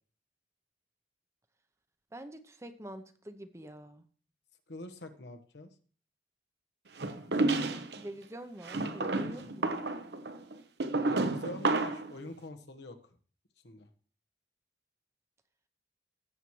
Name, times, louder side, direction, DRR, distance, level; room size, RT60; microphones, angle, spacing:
voice 1, 2.1-4.1 7.6-9.8, right 1 dB, 15° right, 10 dB, 0.7 m, -46 dB
voice 2, 4.7-5.7 11.1-13.0 13.6-13.9, left 1 dB, 80° left, 6 dB, 1.2 m, -44 dB
sound 1, 7.0-8.0 8.6-12.1, right 2 dB, 70° right, 0.9 m, -31 dB
17.0 x 7.2 x 3.1 m, 0.42 s
head